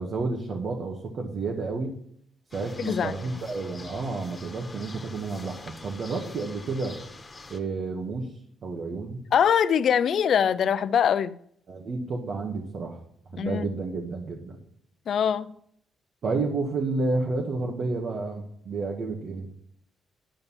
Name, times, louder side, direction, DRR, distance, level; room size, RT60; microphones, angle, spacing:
voice 1, 0.0-1.9 2.5-7.0 7.5-8.3 8.6-9.2 11.7-13.0 13.3-14.6 16.2-19.5, right 3 dB, 55° right, 1.9 m, -30 dB
sound 1, 2.5-7.6, left 2 dB, 25° left, 1.7 m, -44 dB
voice 2, 2.8-3.1 9.3-11.3 13.4-13.7 15.1-15.5, left 8 dB, 60° left, 0.6 m, -23 dB
12.0 x 5.4 x 7.2 m
cardioid pair, 90°, 0 cm